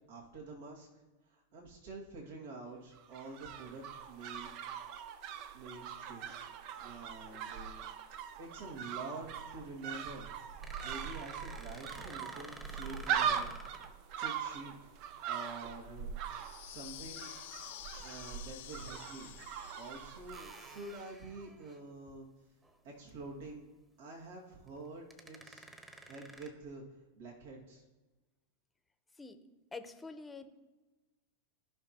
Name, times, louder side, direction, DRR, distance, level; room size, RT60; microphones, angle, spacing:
voice 1, 0.1-0.9 1.2-4.6 5.5-7.9 8.4-10.3 10.8-13.7 14.2-14.8 15.3-17.3 18.0-19.4 19.8-22.3 22.8-23.7 24.0-25.7 26.1-26.8 27.1-27.8, right 3 dB, 70° right, -3 dB, 2.2 m, -48 dB
sound 1, 2.9-21.1 21.4-21.5, right 8 dB, 50° right, 0.7 m, -41 dB
sound 2, 10.6-13.9 16.0-16.3 17.9-18.1 19.0-19.1 20.3-22.1 22.6-22.8 23.1-23.2 24.7-24.8 25.1-26.5, right 1 dB, 10° right, 1.3 m, -52 dB
sound 3, 16.3-20.4, left 14 dB, 65° left, 0.5 m, -50 dB
voice 2, 29.7-30.5, left 3 dB, 10° left, 9 dB, 0.9 m, -46 dB
15.5 x 5.8 x 3.0 m, 1.2 s
hypercardioid pair, 100°, 0 cm